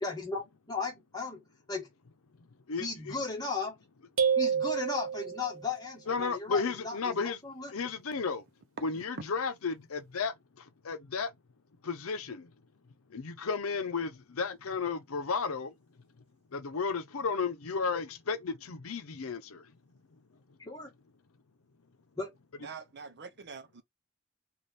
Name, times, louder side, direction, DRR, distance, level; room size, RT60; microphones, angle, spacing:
voice 1, 0.0-1.9 2.8-3.8 4.4-7.7 20.6-20.9 22.2-22.3, left 4 dB, 20° left, 1.4 m, -36 dB
voice 2, 2.4-3.2 6.1-7.4 7.7-8.4 8.8-11.3 11.8-12.5 13.1-15.8 16.2-16.3 16.5-19.8 20.1-20.2 20.5-20.6, left 5 dB, 85° left, 0.7 m, -34 dB
sound 1, 4.2-5.7, right 7 dB, 85° right, 1.0 m, -28 dB
voice 3, 22.6-23.8, right 5 dB, 55° right, 0.6 m, -45 dB
3.3 x 2.5 x 4.0 m
head